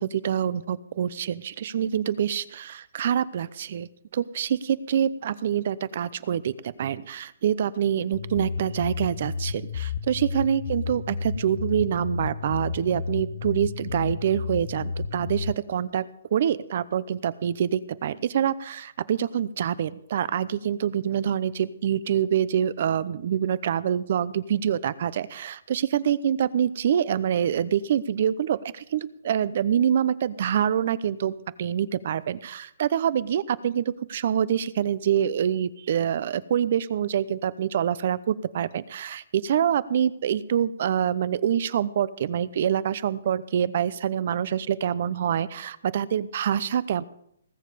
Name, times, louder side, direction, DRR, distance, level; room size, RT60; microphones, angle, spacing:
voice 1, 0.0-16.0 16.3-47.0, right 9 dB, 45° right, 18 dB, 0.7 m, -26 dB
sound 1, 8.1-15.5, left 5 dB, 65° left, 0.8 m, -32 dB
19.0 x 7.4 x 6.8 m, 0.70 s
hypercardioid pair, 165°, 0 cm